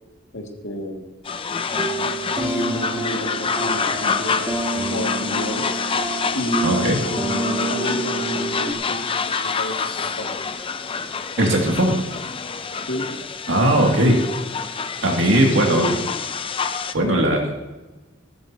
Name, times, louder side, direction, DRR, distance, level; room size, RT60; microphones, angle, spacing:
voice 1, 0.3-1.0 2.4-5.6 6.3-9.7 10.2-10.3 12.9-13.1 13.6-13.7 14.0-14.1 15.2-15.9 17.0-17.3, equal, 70° left, 1 dB, 2.3 m, -29 dB
labormix medina marrakesh, 1.3-16.9, left 5 dB, 25° left, 0.5 m, -27 dB
sound 1, 1.7-8.7, right 2 dB, 15° right, 0.9 m, -29 dB
voice 2, 6.6-7.0 11.4-11.9 13.5-14.1 15.0-15.9 16.9-17.5, right 1 dB, 75° right, 0 dB, 2.4 m, -18 dB
15.0 x 13.0 x 2.9 m, 1.1 s
head